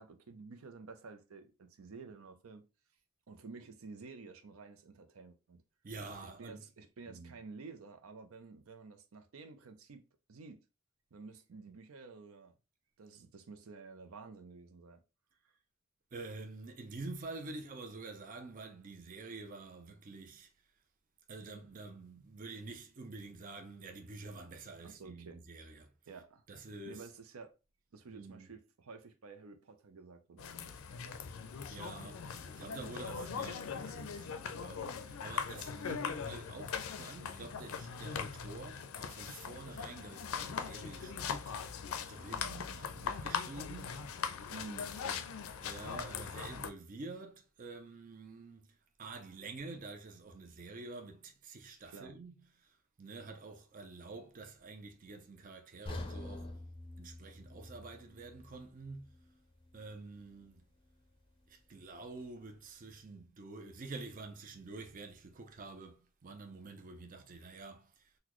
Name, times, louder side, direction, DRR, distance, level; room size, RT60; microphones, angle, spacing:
voice 1, 0.0-2.6 3.3-5.6 6.2-10.0 10.3-10.6 11.1-12.5 13.0-15.0 24.8-25.4 26.1-26.4 26.8-27.5 27.9-30.7 44.5-45.3 51.8-52.2, right 4 dB, 85° right, 0.5 m, -51 dB
voice 2, 5.8-6.6 7.1-7.3 16.1-20.5 21.3-25.9 26.5-27.1 28.1-28.5 31.7-34.3 34.6-41.6 42.1-44.0 45.6-52.3 52.6-56.5 57.0-59.1 59.7-60.6 61.5-68.1, right 3 dB, 40° right, 0.5 m, -48 dB
sound 1, 30.4-46.7, left 6 dB, 85° left, 0.4 m, -40 dB
sound 2, 55.9-59.9 60.3-60.4 61.0-61.1, left 1 dB, 25° left, 0.5 m, -47 dB
3.9 x 2.2 x 3.0 m
head